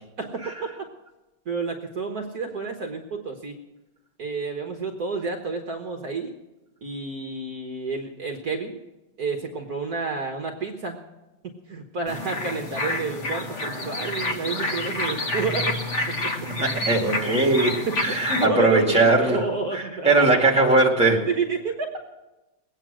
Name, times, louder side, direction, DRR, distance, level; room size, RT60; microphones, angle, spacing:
voice 1, 0.2-0.9 1.5-3.6 4.2-6.3 6.8-8.8 9.2-11.0 11.7-15.8 16.2-16.3 17.9-20.6 21.3-22.0, right 3 dB, 55° right, 3 dB, 1.5 m, -30 dB
sound 1, 12.1-18.5, left 2 dB, 40° left, 1.5 m, -28 dB
voice 2, 16.6-19.4 19.7-21.3, right 2 dB, 5° right, -1 dB, 2.0 m, -20 dB
21.0 x 9.0 x 6.1 m, 1.0 s
omnidirectional pair, 2.2 m